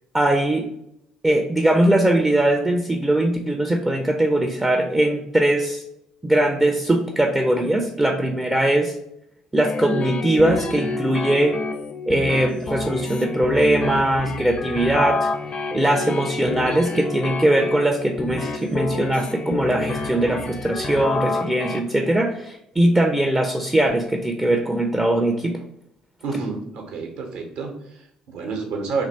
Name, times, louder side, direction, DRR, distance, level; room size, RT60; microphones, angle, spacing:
voice 1, 0.1-0.6 1.2-5.8 6.2-9.0 9.5-11.5 12.1-15.3 15.7-25.5, right 1 dB, 10° right, 3 dB, 0.4 m, -20 dB
sound 1, 9.6-21.8, left 3 dB, 40° left, 0.5 m, -28 dB
voice 2, 26.2-29.1, right 4 dB, 65° right, 2 dB, 0.9 m, -29 dB
2.9 x 2.6 x 4.0 m, 0.77 s
figure-of-eight pair, 50°, 3 cm